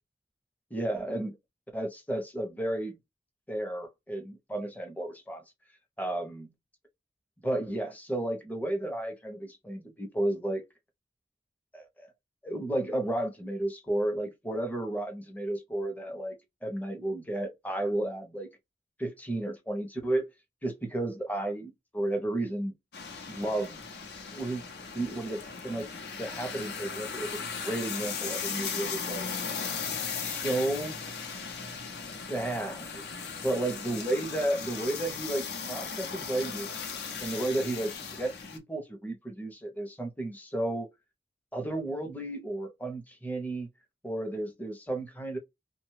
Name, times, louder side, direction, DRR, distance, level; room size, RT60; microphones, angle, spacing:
voice 1, 0.7-1.4 1.7-3.0 3.5-5.4 6.0-6.5 7.4-10.6 11.7-12.1 12.4-18.5 19.0-20.2 20.6-22.7 23.3-23.8 24.3-24.6 24.9-25.9 26.1-29.3 30.1-31.0 32.3-33.0 33.4-36.8 37.2-40.9 41.5-43.7 44.0-45.4, right 1 dB, 10° left, 0.6 m, -33 dB
sound 1, 22.9-38.6, left 5 dB, 65° left, 0.7 m, -37 dB
2.9 x 2.2 x 3.1 m
head